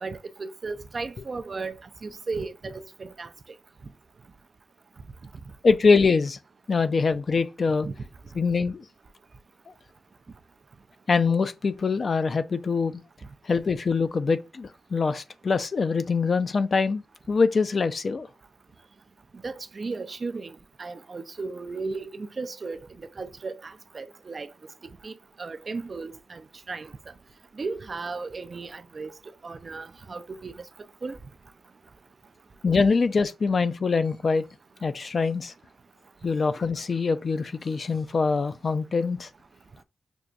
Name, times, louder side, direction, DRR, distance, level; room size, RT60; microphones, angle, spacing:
voice 1, 0.0-1.7 2.0-3.3 7.8-7.9 19.4-24.5 25.0-25.1 25.4-26.9 27.6-29.1 29.4-30.5 31.0-31.2, right 4 dB, 50° right, 0.4 m, -35 dB
voice 2, 5.6-6.4 6.7-7.9 8.3-8.8 11.1-13.0 13.4-17.0 17.3-18.3 32.6-34.4 34.8-35.5 36.2-39.3, left 4 dB, 50° left, 0.4 m, -24 dB
6.0 x 2.2 x 2.5 m
cardioid pair, 60°, 0 cm